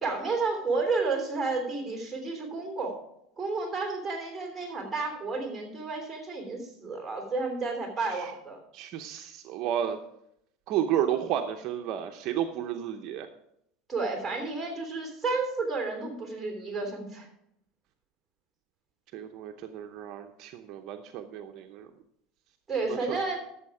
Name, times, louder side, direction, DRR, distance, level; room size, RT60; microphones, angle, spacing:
voice 1, 0.0-3.0 3.4-8.6 13.9-17.3 22.7-23.4, right 3 dB, 5° right, 1 dB, 3.4 m, -31 dB
voice 2, 8.7-10.0 10.7-13.3 19.1-21.9 23.1-23.2, right 10 dB, 45° right, 5 dB, 0.7 m, -32 dB
13.0 x 7.1 x 4.9 m, 0.76 s
cardioid pair, 160°, 0 cm